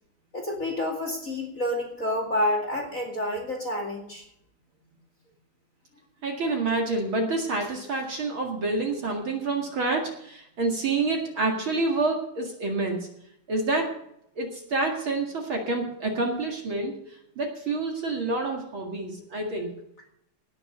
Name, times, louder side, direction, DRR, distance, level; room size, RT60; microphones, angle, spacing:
voice 1, 0.3-4.3, left 1 dB, 30° left, 1 dB, 2.4 m, -29 dB
voice 2, 6.2-13.1 13.5-13.9 14.4-16.9 17.4-19.7, right 3 dB, 45° right, 2 dB, 2.6 m, -28 dB
18.5 x 6.9 x 6.7 m, 0.75 s
omnidirectional pair, 3.5 m